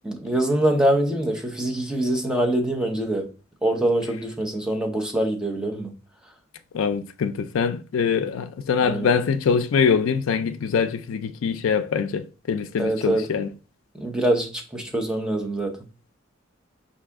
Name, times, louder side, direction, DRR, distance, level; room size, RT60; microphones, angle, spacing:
voice 1, 0.0-3.3 3.6-5.9 8.8-9.1 12.8-13.2 13.9-15.8, right 1 dB, 5° right, 0.7 m, -24 dB
voice 2, 6.7-13.5, left 6 dB, 90° left, 0.4 m, -23 dB
4.8 x 2.8 x 3.5 m
head